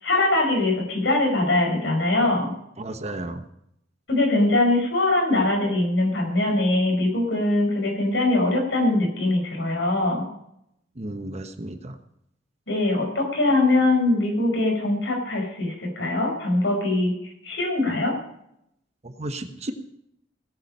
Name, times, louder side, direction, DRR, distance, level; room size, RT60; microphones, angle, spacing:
voice 1, 0.0-2.6 4.1-10.3 12.7-18.1, left 2 dB, 80° left, 2 dB, 5.2 m, -22 dB
voice 2, 2.8-3.5 11.0-12.0 19.0-19.7, right 1 dB, 35° right, 8 dB, 1.1 m, -33 dB
17.0 x 8.9 x 5.5 m, 0.75 s
head